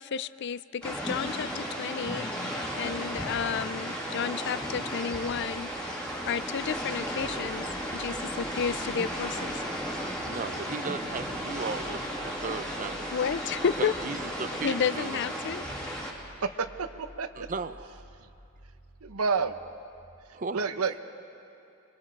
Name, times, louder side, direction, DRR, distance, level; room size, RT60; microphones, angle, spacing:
voice 1, 0.0-7.7 7.9-9.6 13.1-13.9 14.6-15.7, left 7 dB, 55° left, 17 dB, 0.4 m, -32 dB
sound 1, 0.8-16.1, equal, 5° left, 2.7 m, -34 dB
sound 2, 5.2-20.2, right 1 dB, 35° left, 1.6 m, -53 dB
voice 2, 10.3-13.1 13.8-15.2 17.4-18.0 20.3-20.7, right 4 dB, 35° right, 11 dB, 0.6 m, -36 dB
voice 3, 16.4-17.5 19.0-19.5 20.5-21.0, right 5 dB, 85° right, 10 dB, 0.9 m, -29 dB
26.0 x 22.5 x 4.5 m, 2.6 s
head